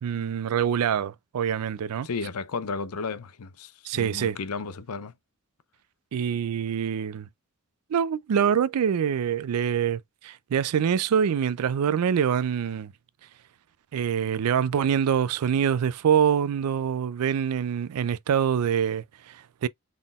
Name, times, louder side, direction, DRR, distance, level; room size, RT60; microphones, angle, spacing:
voice 1, 0.0-2.1 3.8-4.4 6.1-7.3 7.9-12.9 13.9-19.7, right 8 dB, 85° right, 0.4 m, -25 dB
voice 2, 2.0-5.1, left 4 dB, 85° left, 0.6 m, -33 dB
4.0 x 3.6 x 2.3 m
head